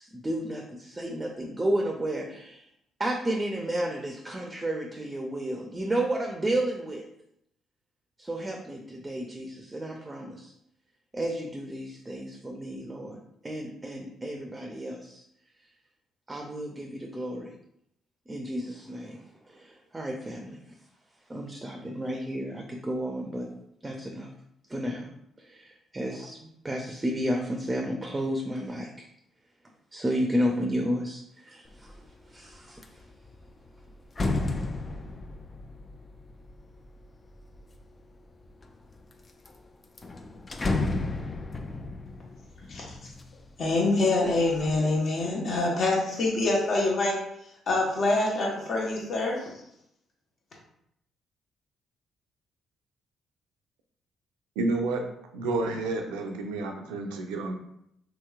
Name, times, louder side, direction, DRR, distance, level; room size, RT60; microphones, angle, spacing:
voice 1, 0.0-2.7 3.0-7.0 8.2-10.5 11.1-15.2 16.3-17.5 18.3-19.2 19.5-20.6 21.3-23.5 23.8-24.3 24.7-25.1 25.4-26.4 26.6-29.1 29.9-31.9 32.3-32.8, right 1 dB, 25° right, 2 dB, 0.5 m, -32 dB
sound 1, 31.7-32.1 32.5-37.8 38.4-39.1 39.5-39.6 39.8-43.8 44.1-44.8, left 2 dB, 35° left, 0.4 m, -33 dB
voice 2, 43.6-47.2 47.7-49.5, left 2 dB, 60° left, -3 dB, 1.1 m, -25 dB
voice 3, 54.6-55.1 55.3-57.5, right 2 dB, 85° right, 3 dB, 0.4 m, -30 dB
2.9 x 2.9 x 2.4 m, 0.76 s
supercardioid pair, 55°, 0 cm